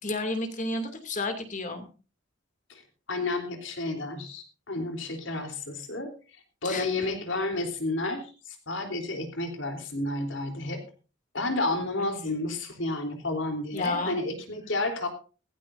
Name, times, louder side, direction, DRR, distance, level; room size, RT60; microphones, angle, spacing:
voice 1, 0.0-1.9 6.6-6.9 12.0-12.1 13.7-14.2, left 2 dB, 40° left, 7 dB, 2.6 m, -31 dB
voice 2, 3.1-6.2 6.6-10.8 11.3-15.1, left 2 dB, 80° left, 5 dB, 3.5 m, -31 dB
16.5 x 15.5 x 2.6 m, 0.35 s
head